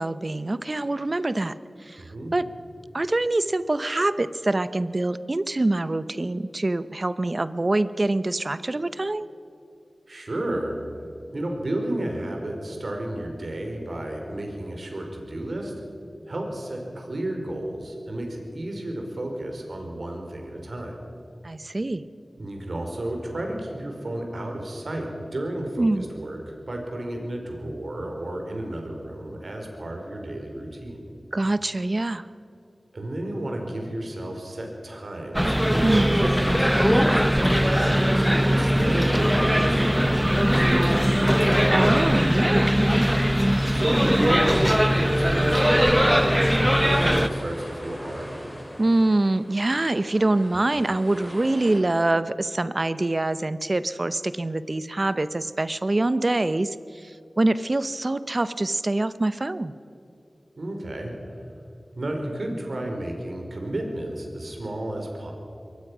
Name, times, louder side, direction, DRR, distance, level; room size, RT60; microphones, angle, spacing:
voice 1, 0.0-1.5 1.8-2.0 2.3-2.5 2.9-9.3 21.4-22.0 25.8-26.1 31.3-32.3 35.8-36.2 41.7-42.8 48.8-59.7, right 2 dB, 45° right, 14 dB, 0.8 m, -25 dB
voice 2, 2.0-2.3 10.1-10.8 11.3-15.7 16.3-20.9 22.4-26.4 26.7-31.0 32.9-41.1 43.7-48.4 60.6-61.1 62.0-65.3, right 1 dB, 65° right, 2 dB, 4.6 m, -32 dB
sound 1, 35.3-47.3, equal, 5° right, 1.1 m, -20 dB
sound 2, 46.7-51.8, equal, 15° left, 4.9 m, -40 dB
23.0 x 18.0 x 6.2 m, 2.7 s
wide cardioid pair, 50°, 0 cm